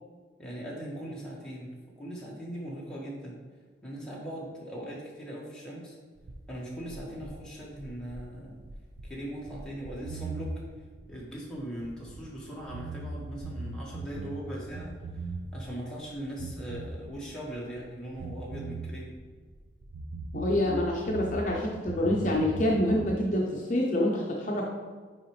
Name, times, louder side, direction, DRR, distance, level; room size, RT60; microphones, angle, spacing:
voice 1, 0.4-3.4 3.8-6.0 6.5-8.6 9.0-10.6 11.1-19.1, right 1 dB, 5° left, -6 dB, 1.4 m, -40 dB
sound 1, 6.2-12.4 12.6-15.7 16.0-17.9 18.1-21.6 21.9-23.1, right 2 dB, 70° right, 0.5 m, -39 dB
voice 2, 20.3-24.6, left 1 dB, 40° left, -2 dB, 0.7 m, -27 dB
7.7 x 4.9 x 3.1 m, 1.5 s
head